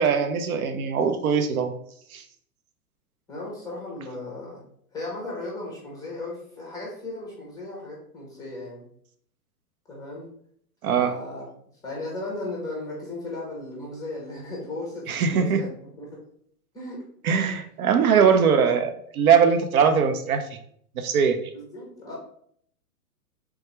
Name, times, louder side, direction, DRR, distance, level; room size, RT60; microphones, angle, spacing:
voice 1, 0.0-1.7 2.1-2.2 10.8-11.1 15.1-15.6 17.2-20.4 21.0-21.4, right 6 dB, 65° right, 7 dB, 0.6 m, -21 dB
voice 2, 3.3-4.6 4.9-8.8 9.9-10.3 10.9-11.5 11.8-15.7 16.0-16.2 16.7-17.0 21.5-22.1, left 2 dB, 10° left, -3 dB, 0.5 m, -36 dB
3.4 x 2.3 x 2.9 m, 0.65 s
hypercardioid pair, 115°, 47 cm